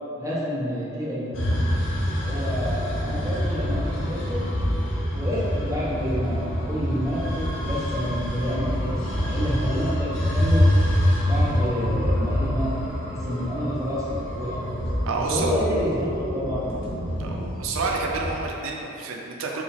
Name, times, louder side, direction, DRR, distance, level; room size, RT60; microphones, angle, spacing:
voice 1, 0.2-1.4 2.2-4.4 5.1-10.7 11.2-14.6 15.3-16.8, equal, 15° right, -8 dB, 0.6 m, -29 dB
sound 1, 1.3-18.5, equal, 75° left, 0.7 m, -26 dB
voice 2, 15.1-15.5 17.2-19.6, right 3 dB, 90° right, 0 dB, 0.4 m, -29 dB
4.7 x 2.3 x 3.3 m, 2.8 s
head